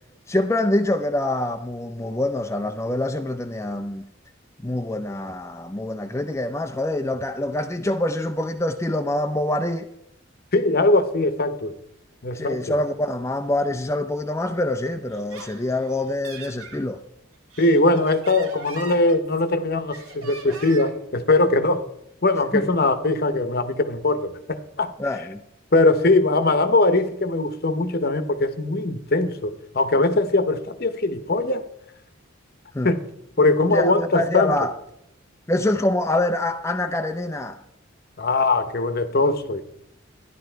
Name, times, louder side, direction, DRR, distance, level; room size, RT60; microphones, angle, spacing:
voice 1, 0.3-4.1 4.6-9.9 12.3-17.0 22.5-22.6 25.0-25.4 32.7-32.9 33.7-34.7 35.5-37.6, left 1 dB, 15° left, 0.5 m, -25 dB
voice 2, 10.5-11.8 12.2-12.8 17.6-21.9 22.2-24.9 25.7-31.6 32.8-33.0 33.4-34.6 38.2-39.6, left 2 dB, 45° left, 0.9 m, -21 dB
Laughter, 15.1-16.8 17.3-19.5 19.9-21.1, right 4 dB, 90° right, 2.2 m, -40 dB
13.5 x 11.0 x 4.6 m
head